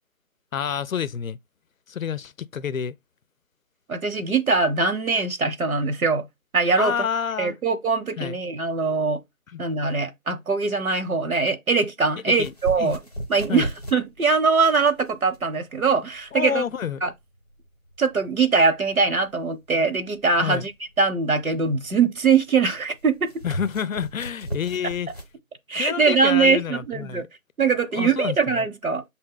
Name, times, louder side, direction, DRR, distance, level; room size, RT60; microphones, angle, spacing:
voice 1, 0.5-1.4 1.9-2.9 6.8-7.6 8.2-8.4 9.5-9.6 12.3-12.9 13.5-13.7 16.3-17.0 20.4-20.7 23.4-25.1 25.7-27.3 27.9-28.4, left 8 dB, 70° left, 0.5 m, -28 dB
voice 2, 3.9-6.3 6.5-6.9 7.4-9.2 9.6-13.0 13.3-16.6 17.0-17.1 18.0-20.7 21.0-23.3 25.7-27.2 27.6-29.0, right 4 dB, 75° right, 0.9 m, -22 dB
sound 1, 12.3-25.3, equal, 30° left, 0.7 m, -38 dB
6.4 x 2.1 x 3.7 m
figure-of-eight pair, 165°, 42 cm